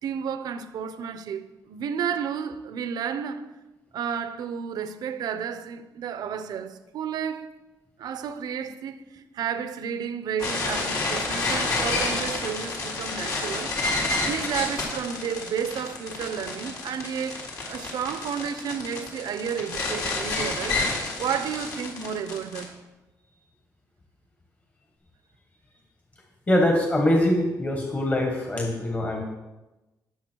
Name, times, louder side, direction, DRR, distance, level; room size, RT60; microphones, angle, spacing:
voice 1, 0.0-3.5 3.9-7.5 8.0-13.7 14.2-20.8 21.2-22.8, right 7 dB, 75° right, 0.9 m, -32 dB
sound 1, 10.4-22.6, left 3 dB, 55° left, 4.0 m, -29 dB
voice 2, 26.5-29.2, left 1 dB, 25° left, 1.8 m, -23 dB
20.0 x 7.2 x 4.7 m
cardioid pair, 150°, 7 cm